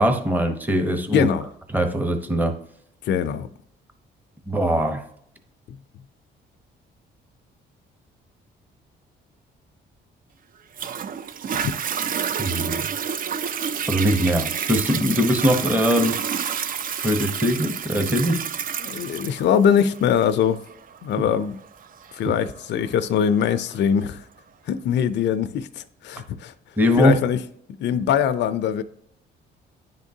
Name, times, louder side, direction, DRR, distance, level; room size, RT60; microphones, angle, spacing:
voice 1, 0.0-1.3 1.7-2.6 4.5-5.0 12.4-12.9 13.9-16.2 17.0-18.4 26.8-27.2, equal, 10° right, 0.8 m, -21 dB
voice 2, 1.1-1.5 3.0-3.5 5.7-5.8 11.6-11.7 18.8-20.6 21.0-21.6 22.2-24.2 24.7-26.5 27.0-27.4 27.8-28.8, left 8 dB, 65° left, 0.5 m, -22 dB
Toilet flush, 10.8-23.8 24.4-24.5, right 7 dB, 45° right, 0.4 m, -29 dB
10.5 x 3.6 x 2.7 m
cardioid pair, 90°, 20 cm